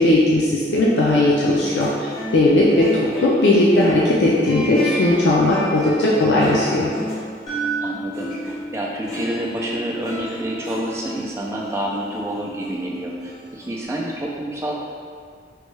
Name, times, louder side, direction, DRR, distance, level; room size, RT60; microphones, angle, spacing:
voice 1, 0.0-6.9, left 1 dB, 80° left, -6 dB, 0.4 m, -17 dB
sound 1, 0.6-8.6 9.0-13.8, left 1 dB, 50° left, 1.4 m, -34 dB
voice 2, 2.5-2.8 7.8-14.7, right 1 dB, 15° right, -3 dB, 0.3 m, -28 dB
sound 2, 7.5-11.5, right 4 dB, 25° left, 0.8 m, -33 dB
3.1 x 2.2 x 3.2 m, 2.1 s
head